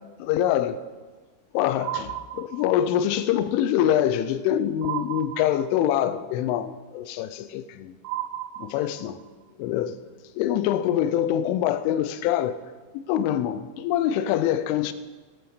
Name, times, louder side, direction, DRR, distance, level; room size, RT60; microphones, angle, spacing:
voice 1, 0.2-0.8 1.5-8.0 8.6-9.2 9.6-10.0 10.4-12.6 12.9-14.9, left 11 dB, 85° left, 3.1 m, -25 dB
sound 1, 1.8-3.0 4.8-6.1 8.0-9.3, right 13 dB, 90° right, 2.5 m, -34 dB
13.0 x 9.3 x 6.7 m
omnidirectional pair, 5.6 m